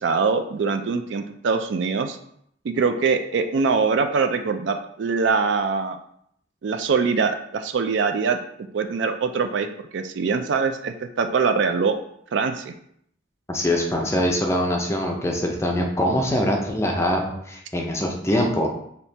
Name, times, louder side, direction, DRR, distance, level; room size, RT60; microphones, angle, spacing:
voice 1, 0.0-2.2 2.6-6.0 6.6-8.4 8.7-9.7 9.9-12.0 12.3-12.7, right 5 dB, 65° right, 8 dB, 0.4 m, -23 dB
voice 2, 13.5-18.8, left 1 dB, 15° left, 1 dB, 0.5 m, -23 dB
4.2 x 2.8 x 3.3 m, 0.70 s
head